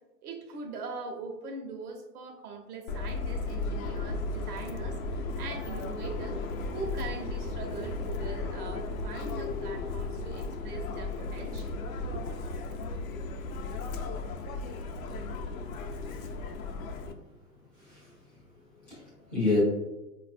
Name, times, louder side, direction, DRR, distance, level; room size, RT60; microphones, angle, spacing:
voice 1, 0.2-6.4 6.7-11.8 12.0-12.2, right 4 dB, 70° right, 2 dB, 1.0 m, -41 dB
Subway metro underground, 2.9-17.1, left 3 dB, 60° left, 0.6 m, -35 dB
voice 2, 17.8-18.1 18.8-19.6, left 3 dB, 5° left, -10 dB, 0.4 m, -30 dB
4.0 x 2.5 x 2.5 m, 1.0 s
hypercardioid pair, 140°, 48 cm